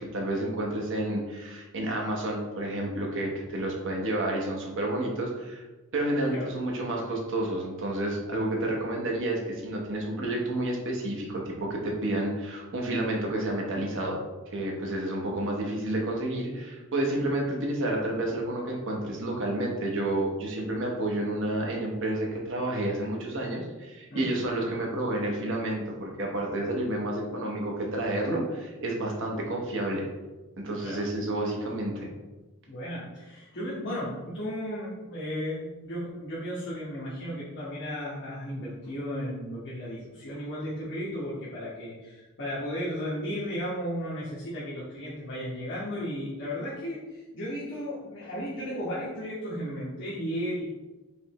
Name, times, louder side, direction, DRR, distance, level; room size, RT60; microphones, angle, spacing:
voice 1, 0.0-5.6 5.9-14.2 14.5-30.0 30.6-32.1, right 1 dB, 60° right, -1 dB, 1.0 m, -30 dB
voice 2, 32.7-50.6, equal, 55° left, -10 dB, 1.3 m, -34 dB
5.1 x 3.4 x 3.0 m, 1.1 s
head